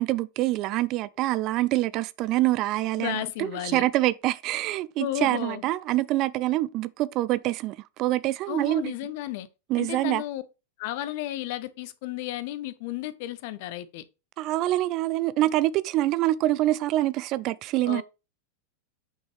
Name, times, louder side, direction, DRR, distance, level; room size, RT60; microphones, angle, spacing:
voice 1, 0.0-8.9 9.7-10.2 14.4-18.0, right 16 dB, 40° right, 0.4 m, -25 dB
voice 2, 3.0-3.9 5.0-5.6 8.5-9.5 9.8-10.4 10.8-14.0 17.8-18.0, left 14 dB, 50° left, 0.8 m, -33 dB
8.5 x 5.3 x 3.3 m
figure-of-eight pair, 90°, 0 cm